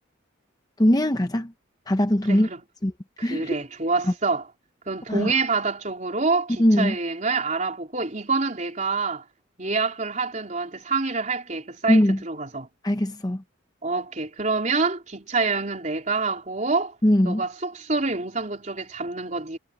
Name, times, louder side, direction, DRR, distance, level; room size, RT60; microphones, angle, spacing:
voice 1, 0.8-1.5 1.9-2.5 2.8-2.9 3.2-3.5 5.1-5.3 6.6-7.0 11.9-12.2 12.8-13.4 17.0-17.4, left 1 dB, 20° left, 0.8 m, -20 dB
voice 2, 2.3-2.6 3.2-4.4 4.9-9.2 9.6-12.7 13.8-17.0 17.2-19.6, right 4 dB, 35° right, 3.9 m, -27 dB
head